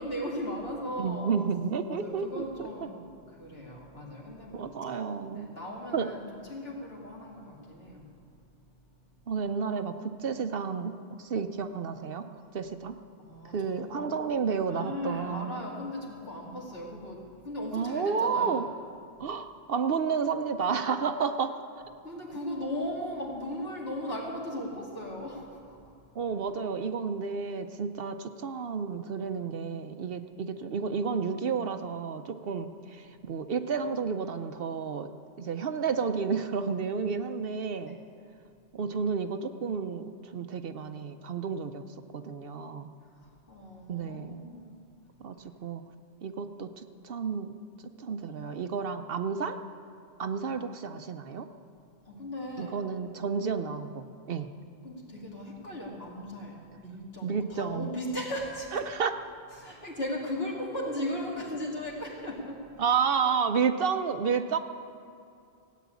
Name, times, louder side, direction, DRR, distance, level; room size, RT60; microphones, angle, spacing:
voice 1, 0.0-1.3 1.9-4.7 5.3-6.2 6.5-8.1 13.2-14.1 14.7-18.7 22.0-25.8 37.8-37.9 43.2-44.7 52.0-52.8 54.8-58.8 59.6-62.6, left 1 dB, 60° left, -3 dB, 2.9 m, -37 dB
voice 2, 1.0-2.7 4.5-5.5 5.9-6.1 9.3-12.3 12.5-13.0 13.5-15.6 17.7-18.7 19.2-21.6 26.2-35.1 35.4-38.0 38.7-41.9 42.1-42.9 43.9-44.4 45.2-45.4 45.6-45.8 46.2-47.5 48.0-49.6 50.2-51.5 52.6-54.5 57.2-57.9 58.7-59.2 62.8-64.6, right 6 dB, 60° right, 8 dB, 0.8 m, -31 dB
16.5 x 9.3 x 8.3 m, 2.4 s
omnidirectional pair, 1.1 m